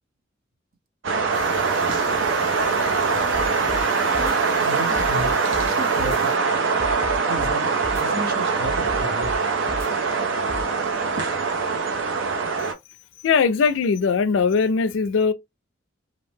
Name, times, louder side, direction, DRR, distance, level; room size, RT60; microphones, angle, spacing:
sound 1, 1.0-12.7, right 4 dB, 80° right, 0.6 m, -23 dB
sound 2, 1.3-6.4, left 3 dB, 20° left, 0.7 m, -44 dB
sound 3, 3.3-3.8 4.1-4.3 4.9-5.7 6.0-6.2 6.8-7.5 7.8-8.0 8.6-9.4 9.7-9.9 10.5-10.6, equal, 15° right, 0.3 m, -33 dB
voice 1, 4.2-5.3 5.6-6.3 7.3-9.4, right 1 dB, 55° right, 0.8 m, -33 dB
voice 2, 13.2-15.3, left 5 dB, 75° left, 0.3 m, -20 dB
2.5 x 2.1 x 3.1 m
head